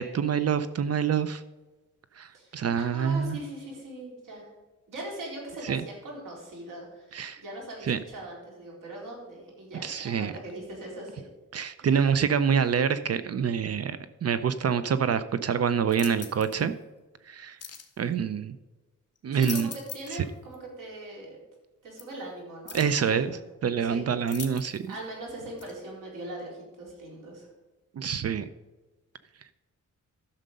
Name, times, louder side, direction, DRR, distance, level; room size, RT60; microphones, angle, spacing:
voice 1, 0.0-1.4 2.2-3.4 5.7-5.8 7.1-7.4 7.9-8.0 9.8-10.3 11.5-16.7 17.3-17.6 18.0-18.6 19.2-19.7 20.1-20.2 22.7-24.9 28.0-28.5, right 7 dB, 50° right, 13 dB, 0.5 m, -26 dB
voice 2, 2.3-4.5 4.9-11.3 11.8-12.1 19.3-21.4 21.8-23.4 23.8-24.2 24.9-27.5, right 1 dB, 90° right, -2 dB, 4.0 m, -41 dB
sound 1, 15.9-16.6 17.6-17.9 19.2-20.2 20.5-20.6 22.0-22.1 22.7-23.0 24.3-24.9 25.6-25.7, left 7 dB, 50° left, 1.4 m, -41 dB
11.5 x 6.5 x 5.3 m, 1.2 s
wide cardioid pair, 130°, 31 cm